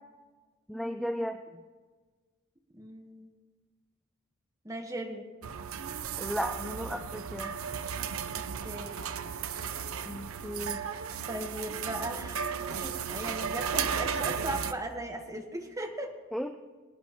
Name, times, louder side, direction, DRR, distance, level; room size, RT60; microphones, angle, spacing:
voice 1, 0.7-1.4 6.2-7.6 10.1-10.8 16.3-16.6, equal, ahead, 6 dB, 0.4 m, -35 dB
voice 2, 2.7-3.3 4.6-5.3 8.3-9.1 11.3-16.1, right 1 dB, 15° right, 2 dB, 1.5 m, -38 dB
sound 1, 5.4-14.7, right 7 dB, 85° right, 0.6 m, -35 dB
25.5 x 9.8 x 3.1 m, 1.4 s
head